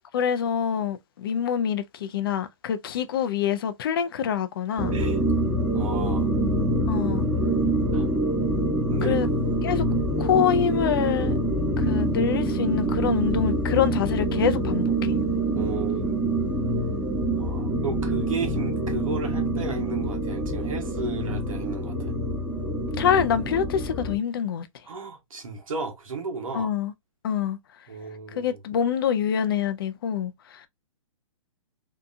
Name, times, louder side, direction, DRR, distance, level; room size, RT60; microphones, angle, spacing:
voice 1, 0.1-5.0 6.9-7.2 9.0-9.3 9.6-9.8 10.2-11.3 11.8-15.2 23.0-24.7 26.5-26.9 27.2-27.6 28.4-30.6, left 8 dB, 45° left, 0.4 m, -25 dB
sound 1, 4.8-24.2, right 1 dB, ahead, 1.0 m, -25 dB
voice 2, 4.9-5.3 5.7-6.3 7.9-8.1 8.9-9.2 15.5-16.4 17.4-22.2 24.9-26.7 27.9-28.6, right 5 dB, 90° right, 1.0 m, -34 dB
2.7 x 2.3 x 2.4 m
hypercardioid pair, 155°, 17 cm